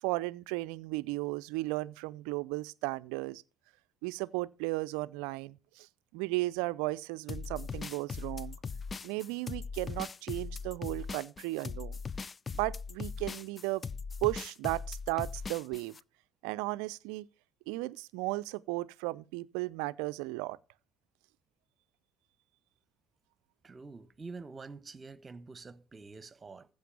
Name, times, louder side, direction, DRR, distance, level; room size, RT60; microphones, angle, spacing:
voice 1, 0.0-3.4 4.0-8.6 9.0-12.0 12.5-13.8 14.2-16.0 16.4-17.3 17.7-20.6, right 21 dB, 75° right, 0.5 m, -35 dB
sound 1, 7.3-16.0, left 5 dB, 35° left, 0.5 m, -40 dB
voice 2, 23.6-26.7, right 4 dB, 30° right, 1.1 m, -47 dB
15.0 x 5.4 x 6.8 m
hypercardioid pair, 55°, 0 cm